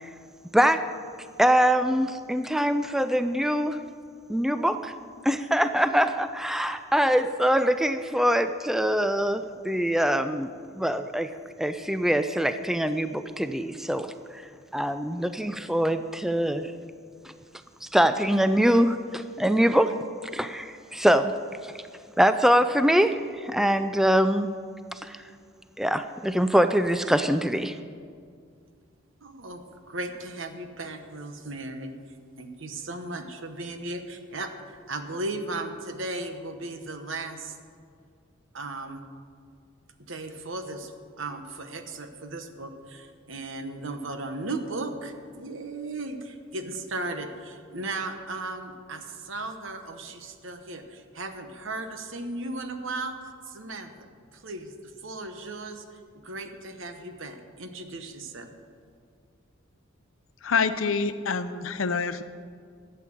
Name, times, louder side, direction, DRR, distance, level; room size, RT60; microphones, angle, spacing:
voice 1, 1.4-3.8 4.3-4.9 5.2-10.5 10.7-11.3 11.6-14.4 14.7-16.7 17.8-20.0 20.3-21.3 21.6-21.7 22.2-24.5 24.9-25.2 25.8-27.8, equal, ahead, 10 dB, 0.3 m, -23 dB
voice 2, 29.2-31.9 32.4-37.6 38.5-39.0 40.1-40.9 41.2-54.7 55.0-58.5, right 2 dB, 65° right, 7 dB, 1.1 m, -36 dB
voice 3, 60.4-62.2, left 5 dB, 75° left, 12 dB, 0.7 m, -26 dB
12.0 x 8.4 x 7.5 m, 2.2 s
head